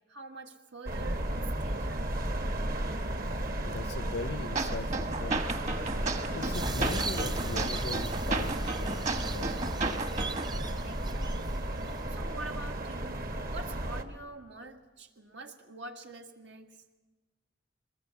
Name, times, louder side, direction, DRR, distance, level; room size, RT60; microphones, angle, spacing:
voice 1, 0.1-2.6 10.8-11.7 12.1-16.8, right 3 dB, 85° right, 4 dB, 1.8 m, -46 dB
sound 1, 0.9-14.0, right 1 dB, 55° right, 1.5 m, -34 dB
voice 2, 3.6-5.4 6.3-8.5 8.8-9.6, left 3 dB, 65° left, 16 dB, 0.6 m, -40 dB
sound 2, 4.6-10.5, right 3 dB, 40° right, 1.3 m, -34 dB
sound 3, 6.5-12.3, right 2 dB, 25° right, 0.8 m, -38 dB
23.0 x 21.0 x 6.9 m, 1.2 s
head